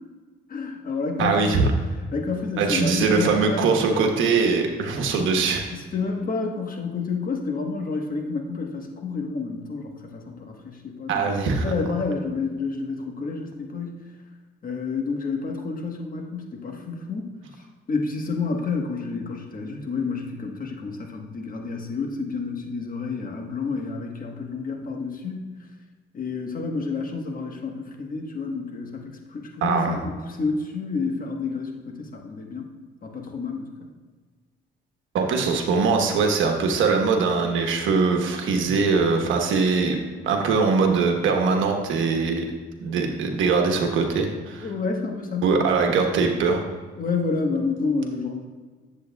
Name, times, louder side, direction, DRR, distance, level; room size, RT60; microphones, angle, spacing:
voice 1, 0.5-1.7 2.1-3.7 5.7-11.3 11.6-14.0 14.6-17.3 17.9-25.5 26.1-32.7 33.0-33.7 44.6-46.0 47.0-48.4, left 4 dB, 45° left, 2 dB, 1.3 m, -29 dB
voice 2, 1.2-1.7 2.6-5.6 11.1-11.7 29.6-30.0 35.1-40.0 40.2-42.4 42.8-44.7 45.4-46.6, right 4 dB, 80° right, 3 dB, 1.1 m, -22 dB
10.5 x 7.7 x 2.3 m, 1.4 s
cardioid pair, 90°, 20 cm